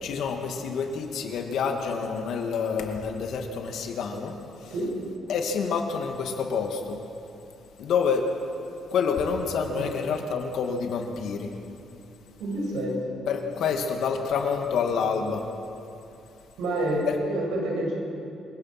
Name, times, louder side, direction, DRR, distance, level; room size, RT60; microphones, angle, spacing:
voice 1, 0.0-4.3 4.6-4.7 5.3-7.0 7.8-8.2 8.9-11.5 13.3-15.5, left 6 dB, 75° left, 4 dB, 2.3 m, -28 dB
voice 2, 12.4-13.1 16.6-17.9, right 1 dB, 85° right, -1 dB, 6.6 m, -28 dB
27.5 x 17.0 x 6.1 m, 2.7 s
cardioid pair, 90°, 0 cm